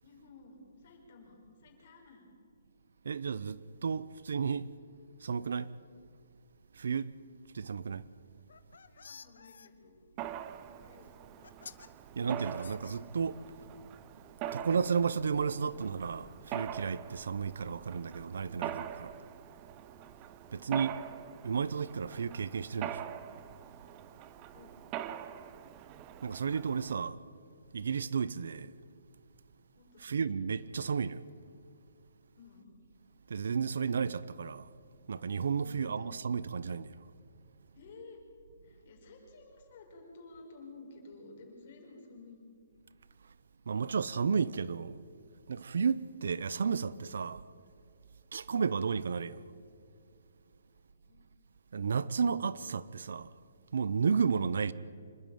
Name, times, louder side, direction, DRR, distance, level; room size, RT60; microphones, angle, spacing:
voice 1, 0.0-2.3 8.8-10.1 10.8-11.6 20.6-21.3 24.5-24.8 29.8-30.3 32.4-32.7 35.6-36.1 37.7-38.2 38.6-42.5 48.3-48.4 50.9-51.3, left 3 dB, 35° left, 5.7 m, -54 dB
voice 2, 3.0-4.7 5.2-5.7 6.7-7.1 7.5-8.1 12.2-13.4 14.5-19.1 20.5-21.0 21.4-23.0 26.2-27.2 27.7-28.7 30.0-31.2 33.3-34.7 35.1-37.0 43.7-45.0 45.5-47.4 48.3-49.4 51.7-53.3 53.7-54.7, right 6 dB, 70° right, 0.8 m, -32 dB
sound 1, 8.4-9.7 10.8-10.9 11.4-11.9 12.4-13.4, left 5 dB, 75° left, 1.3 m, -51 dB
Mechanisms, 10.2-27.0, right 11 dB, 20° right, 0.7 m, -44 dB
26.5 x 12.5 x 9.3 m
hypercardioid pair, 170°, 0 cm